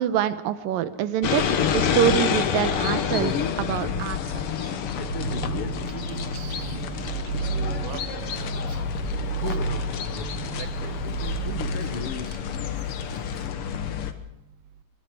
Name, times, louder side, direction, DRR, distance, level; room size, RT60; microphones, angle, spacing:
voice 1, 0.0-4.5, right 11 dB, 85° right, 13 dB, 2.8 m, -26 dB
sound 1, 1.2-14.1, left 8 dB, 60° left, 1.6 m, -28 dB
voice 2, 5.2-7.1 7.4-9.0 9.4-11.0 11.4-11.8, right 7 dB, 65° right, 12 dB, 1.8 m, -32 dB
24.0 x 23.0 x 4.8 m, 0.85 s
omnidirectional pair, 3.9 m